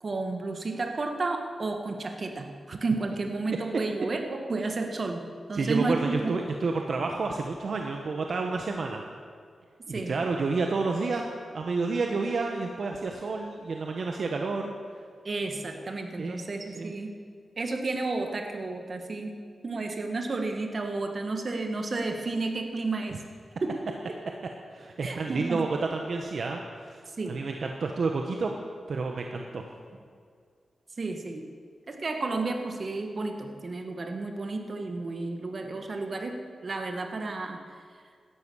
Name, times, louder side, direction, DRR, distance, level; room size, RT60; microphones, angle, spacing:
voice 1, 0.0-5.2 5.5-6.4 9.9-10.2 15.2-17.2 17.6-23.2 23.6-23.8 25.0-25.6 27.2-27.4 31.0-31.5 31.9-37.6, right 3 dB, 50° right, 4 dB, 1.9 m, -32 dB
voice 2, 5.5-9.0 9.9-11.2 11.5-14.7 16.2-16.4 16.7-16.9 24.7-26.6 26.8-27.0 27.3-28.5 28.9-29.6, right 4 dB, 65° right, 2 dB, 1.3 m, -30 dB
17.0 x 13.0 x 6.5 m, 2.1 s
cardioid pair, 85°, 0 cm